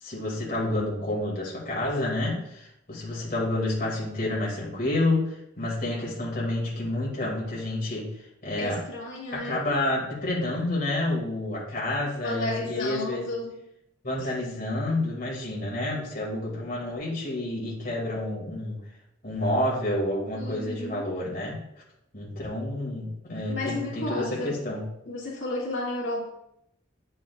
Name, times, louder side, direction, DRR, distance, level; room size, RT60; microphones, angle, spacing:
voice 1, 0.0-8.8 9.3-13.2 14.0-18.8 19.2-21.6 22.1-24.8, left 1 dB, 50° left, -5 dB, 2.1 m, -29 dB
voice 2, 8.6-9.6 12.2-13.6 14.4-14.7 20.3-21.1 23.5-24.6 25.1-26.2, left 2 dB, 85° left, -6 dB, 2.0 m, -33 dB
8.9 x 5.4 x 2.3 m, 0.78 s
head